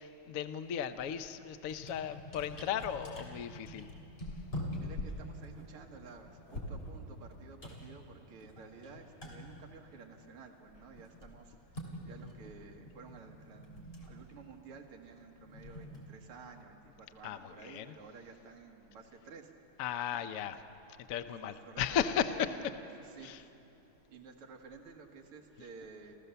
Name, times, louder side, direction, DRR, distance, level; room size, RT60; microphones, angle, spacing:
voice 1, 0.0-3.9 17.2-17.9 19.8-20.6 21.0-22.3 23.2-23.4, left 8 dB, 85° left, 10 dB, 0.7 m, -36 dB
sound 1, 1.1-1.3 1.6-10.4 10.7-16.6, equal, 25° left, 3.1 m, -46 dB
voice 2, 4.8-19.8 20.1-20.2 21.2-22.7 22.9-23.5 24.1-26.2, right 5 dB, 80° right, 1 dB, 2.4 m, -53 dB
29.0 x 14.5 x 6.9 m, 2.9 s
omnidirectional pair, 2.4 m